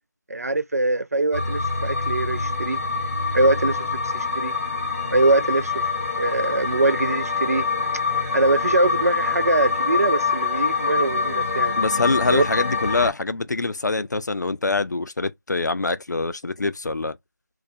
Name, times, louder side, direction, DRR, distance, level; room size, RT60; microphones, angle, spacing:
voice 1, 0.3-2.8 3.3-4.5 5.1-5.8 6.2-7.7 8.3-11.7 12.3-12.4, right 2 dB, 60° right, 0.4 m, -22 dB
sound 1, 1.3-13.1, left 4 dB, 50° left, 0.9 m, -25 dB
voice 2, 11.8-17.2, left 3 dB, 80° left, 0.4 m, -24 dB
2.2 x 2.1 x 2.6 m
figure-of-eight pair, 175°, 9 cm